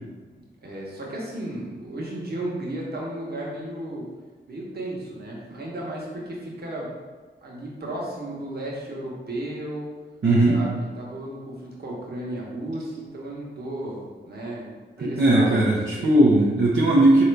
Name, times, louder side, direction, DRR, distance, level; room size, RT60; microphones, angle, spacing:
voice 1, 0.3-4.1 4.5-6.9 7.4-9.9 10.5-14.7 15.0-16.1, right 1 dB, 50° right, -4 dB, 1.2 m, -34 dB
voice 2, 10.2-10.6 15.0-17.2, right 1 dB, 70° right, -7 dB, 0.8 m, -18 dB
3.8 x 2.9 x 3.4 m, 1.3 s
cardioid pair, 50°, 20 cm